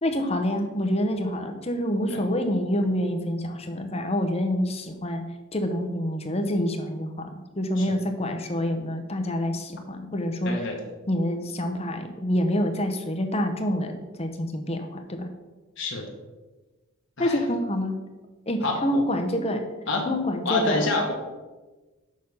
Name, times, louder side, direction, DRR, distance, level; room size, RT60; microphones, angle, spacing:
voice 1, 0.0-5.2 5.5-7.3 7.5-10.5 11.1-15.3 17.2-18.0 18.5-19.6 20.1-20.8, equal, 30° left, 6 dB, 0.9 m, -27 dB
voice 2, 10.4-10.8 15.8-16.0 17.2-17.4 18.6-19.0 19.9-20.1 20.4-21.1, left 3 dB, 55° left, 0 dB, 1.3 m, -27 dB
6.7 x 6.2 x 5.5 m, 1.2 s
head